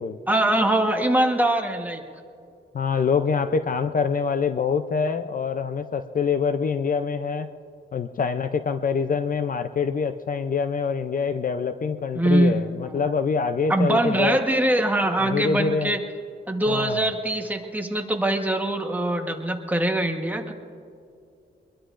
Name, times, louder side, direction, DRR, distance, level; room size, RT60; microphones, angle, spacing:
voice 1, 0.3-2.0 12.1-12.7 12.9-13.0 13.7-16.0 16.5-20.5, right 1 dB, 10° right, 3 dB, 1.2 m, -23 dB
voice 2, 2.7-7.5 7.9-14.4 15.2-15.9 16.7-17.0, left 5 dB, 45° left, 9 dB, 0.5 m, -25 dB
23.0 x 22.0 x 2.5 m, 2.4 s
wide cardioid pair, 140°, 20 cm